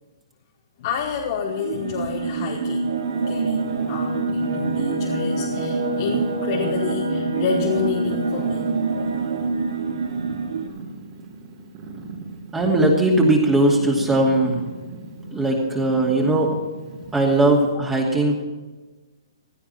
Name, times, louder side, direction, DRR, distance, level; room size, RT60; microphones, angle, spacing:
voice 1, 0.8-8.8 15.3-15.8 17.5-17.6, left 6 dB, 45° left, -1 dB, 1.9 m, -29 dB
sound 1, 1.5-10.7, right 3 dB, 75° right, 2.5 m, -25 dB
Purr, 3.0-17.7, right 3 dB, 35° right, 3.2 m, -39 dB
voice 2, 12.5-14.6 15.3-16.6 17.1-18.3, right 2 dB, 10° right, -2 dB, 2.6 m, -19 dB
16.5 x 13.0 x 4.3 m, 1.2 s
hypercardioid pair, 145°, 3 cm